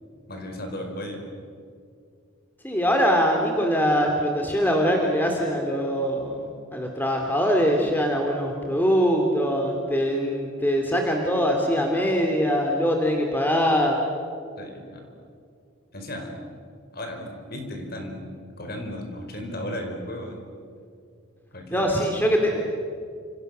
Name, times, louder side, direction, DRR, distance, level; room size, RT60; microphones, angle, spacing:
voice 1, 0.3-1.2 14.6-15.1 15.9-16.3 16.9-18.3 18.6-20.4 21.5-22.1, left 1 dB, 45° left, 4 dB, 4.9 m, -35 dB
voice 2, 2.6-6.3 6.7-14.0 21.7-22.7, equal, 10° left, 2 dB, 2.6 m, -22 dB
29.5 x 27.5 x 6.7 m, 2.3 s
head